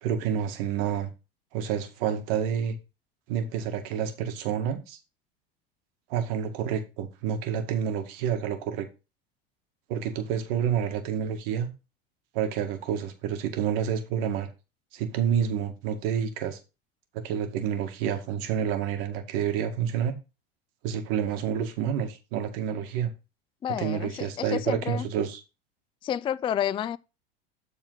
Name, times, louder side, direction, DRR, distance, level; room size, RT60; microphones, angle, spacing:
voice 1, 0.0-1.1 1.5-2.8 3.3-5.0 6.1-8.9 9.9-11.7 12.3-14.5 14.9-16.6 17.1-20.1 20.8-23.1 23.8-25.4, right 8 dB, 65° right, 1.9 m, -29 dB
voice 2, 23.6-25.1 26.0-27.0, left 10 dB, 20° left, 0.3 m, -30 dB
12.5 x 4.2 x 3.9 m
hypercardioid pair, 100°, 30 cm